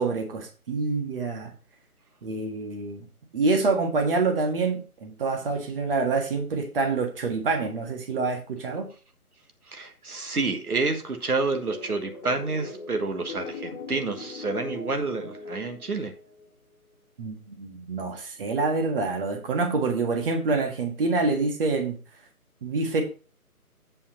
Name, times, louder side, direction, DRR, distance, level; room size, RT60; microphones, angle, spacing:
voice 1, 0.0-1.5 2.2-3.0 3.3-8.9 17.2-22.0 22.6-23.0, right 3 dB, 35° right, 3 dB, 1.7 m, -26 dB
voice 2, 9.7-16.1, right 3 dB, 75° right, 6 dB, 1.6 m, -29 dB
sound 1, 11.4-16.5, left 3 dB, 30° left, 1.7 m, -40 dB
8.7 x 4.7 x 5.5 m, 0.36 s
figure-of-eight pair, 150°, 45 cm